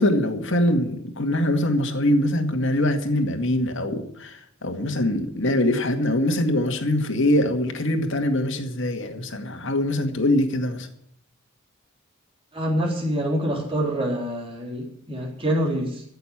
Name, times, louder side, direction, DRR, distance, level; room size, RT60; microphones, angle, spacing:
voice 1, 0.0-10.9, left 1 dB, 60° left, 2.1 m, -23 dB
voice 2, 12.5-16.0, equal, 25° right, 3.5 m, -26 dB
14.0 x 6.9 x 10.0 m
head